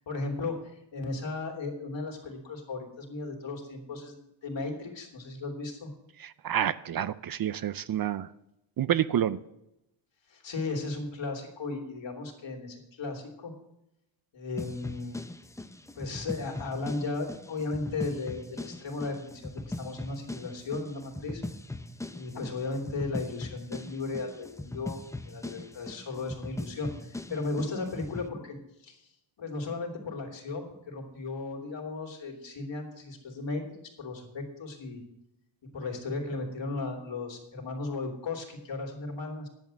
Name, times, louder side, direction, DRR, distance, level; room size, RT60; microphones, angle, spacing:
voice 1, 0.0-5.9 10.3-13.5 14.3-15.2 15.9-21.4 22.1-28.6 28.8-29.0 29.4-35.0 35.7-39.5, left 3 dB, 65° left, 1 dB, 3.0 m, -36 dB
voice 2, 6.2-8.3 8.8-9.4, right 10 dB, 50° right, 16 dB, 0.5 m, -28 dB
sound 1, 14.6-28.3, left 2 dB, 5° left, 0.4 m, -40 dB
10.5 x 8.2 x 6.3 m, 0.86 s
wide cardioid pair, 155°, 47 cm